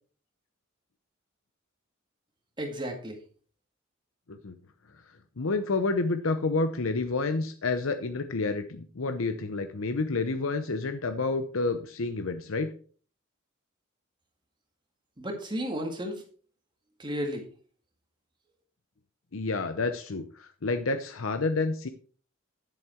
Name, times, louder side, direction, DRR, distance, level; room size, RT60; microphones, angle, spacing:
voice 1, 2.6-3.2 15.2-16.2 17.0-17.5, equal, 25° right, 3 dB, 1.9 m, -33 dB
voice 2, 5.4-12.7 19.3-21.9, left 3 dB, 80° left, 9 dB, 0.8 m, -29 dB
11.0 x 7.3 x 4.4 m, 0.43 s
head